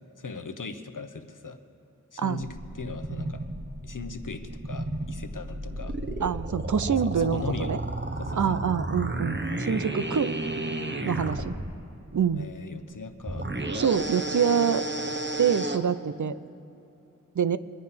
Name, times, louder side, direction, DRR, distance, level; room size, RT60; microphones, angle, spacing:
voice 1, 0.2-1.6 2.1-3.4 3.8-6.0 7.0-7.8 8.2-8.6 11.3-11.6 12.3-13.5, left 4 dB, 70° left, 7 dB, 1.0 m, -39 dB
sound 1, 2.4-11.7 13.2-15.8, right 1 dB, 35° right, 1.0 m, -32 dB
voice 2, 6.2-7.8 8.4-10.3 11.0-11.5 12.1-12.5 13.7-14.8 15.4-16.4 17.4-17.6, right 7 dB, 65° right, 15 dB, 0.5 m, -26 dB
23.0 x 9.5 x 5.8 m, 2.9 s
wide cardioid pair, 45°, 33 cm